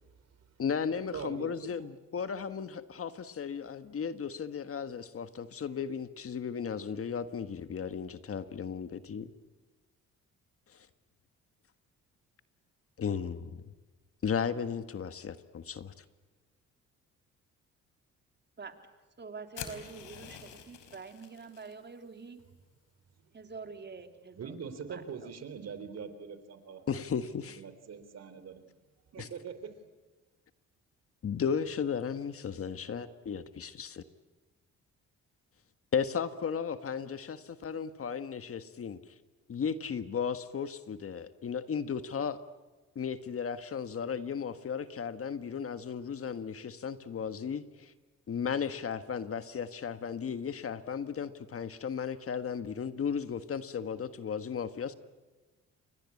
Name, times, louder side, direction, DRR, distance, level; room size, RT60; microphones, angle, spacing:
voice 1, 0.6-9.3 10.7-10.9 13.0-13.6 14.2-16.0 26.9-27.6 29.2-29.3 31.2-34.0 35.9-39.1 39.5-42.4 42.9-47.9 48.3-54.9, left 7 dB, 50° left, 11 dB, 1.6 m, -35 dB
voice 2, 1.1-1.9 23.2-23.3 24.3-26.9 27.5-28.6 29.1-29.8, right 6 dB, 55° right, 11 dB, 3.6 m, -43 dB
voice 3, 19.2-22.4 23.3-24.5 24.9-25.0, right 5 dB, 35° right, 6 dB, 3.2 m, -46 dB
sound 1, 19.5-21.7, left 8 dB, 80° left, 4.2 m, -46 dB
29.5 x 23.5 x 8.5 m, 1.2 s
cardioid pair, 90°, 30 cm